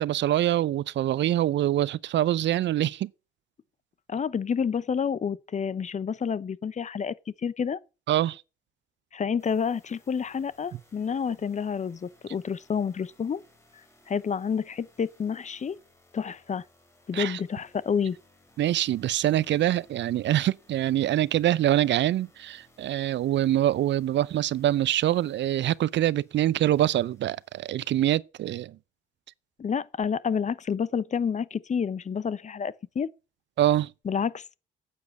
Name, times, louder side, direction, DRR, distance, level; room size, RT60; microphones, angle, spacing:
voice 1, 0.0-3.1 8.1-8.4 17.1-17.4 18.6-28.8 33.6-33.9, right 12 dB, 65° right, 0.6 m, -25 dB
voice 2, 4.1-7.1 7.4-7.8 9.1-13.4 14.1-15.8 16.1-16.6 17.1-18.2 29.6-33.1 34.0-34.5, left 6 dB, 35° left, 0.8 m, -29 dB
sound 1, 9.4-28.1, left 1 dB, 15° left, 4.2 m, -62 dB
9.5 x 8.3 x 8.3 m
cardioid pair, 90°, 20 cm